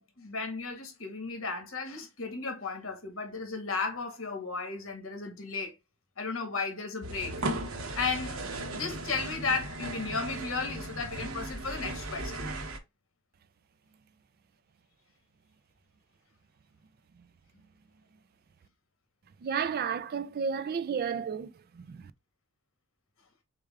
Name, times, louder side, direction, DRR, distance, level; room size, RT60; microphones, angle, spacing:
voice 1, 0.0-5.7 6.2-7.4 8.0-8.5 8.7-12.5, left 4 dB, 70° left, 1.7 m, -34 dB
sound 1, 7.0-12.8, right 2 dB, 80° right, 1.0 m, -37 dB
voice 2, 19.4-22.1, right 6 dB, 45° right, 0.4 m, -32 dB
6.6 x 2.3 x 3.5 m
head